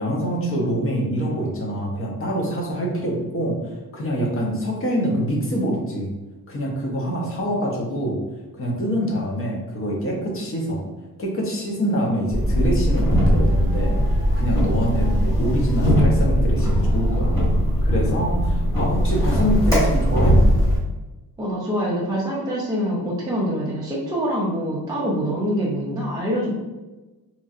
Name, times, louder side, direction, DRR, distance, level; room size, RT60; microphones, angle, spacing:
voice 1, 0.0-6.1 6.5-8.2 8.5-10.8 11.2-17.3 17.8-20.4, equal, 35° left, -2 dB, 0.6 m, -25 dB
sound 1, 12.3-20.8, equal, 10° left, 1.2 m, -19 dB
voice 2, 21.4-26.5, equal, 10° right, -6 dB, 0.3 m, -25 dB
3.0 x 2.6 x 2.3 m, 1.1 s
wide cardioid pair, 170°, 37 cm